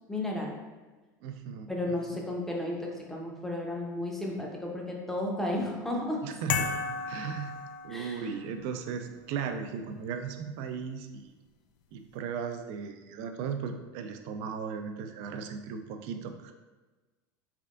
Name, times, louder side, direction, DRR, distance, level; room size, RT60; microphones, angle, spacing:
voice 1, 0.1-0.5 1.7-6.2 7.9-8.3, left 1 dB, 5° left, -2 dB, 0.8 m, -33 dB
voice 2, 1.2-2.0 6.2-6.7 7.1-7.5 7.8-11.3 11.9-16.5, right 6 dB, 60° right, 7 dB, 0.4 m, -37 dB
sound 1, 6.5-8.4, left 5 dB, 75° left, 0.4 m, -33 dB
3.5 x 3.4 x 2.5 m, 1.2 s
hypercardioid pair, 100°, 11 cm